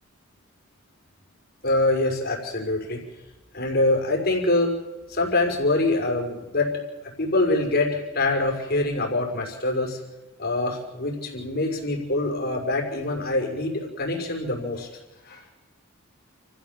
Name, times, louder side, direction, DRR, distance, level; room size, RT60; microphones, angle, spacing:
voice 1, 1.6-3.0 3.5-4.7 5.1-6.8 7.2-10.0 10.4-14.9 15.2-15.4, left 2 dB, 50° left, 1 dB, 5.9 m, -24 dB
29.5 x 15.5 x 7.6 m, 1.1 s
head